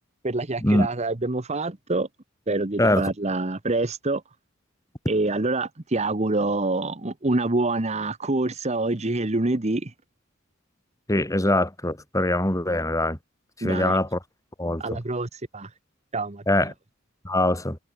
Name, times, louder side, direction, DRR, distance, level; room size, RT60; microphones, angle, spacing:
voice 1, 0.2-2.1 2.5-4.2 5.1-9.9 13.6-14.0 14.8-15.7 16.1-16.4, right 2 dB, 35° right, 1.2 m, -26 dB
voice 2, 2.8-3.1 11.1-13.2 13.6-14.2 14.6-15.0 16.5-16.7 17.2-17.8, left 1 dB, 15° left, 4.0 m, -23 dB
head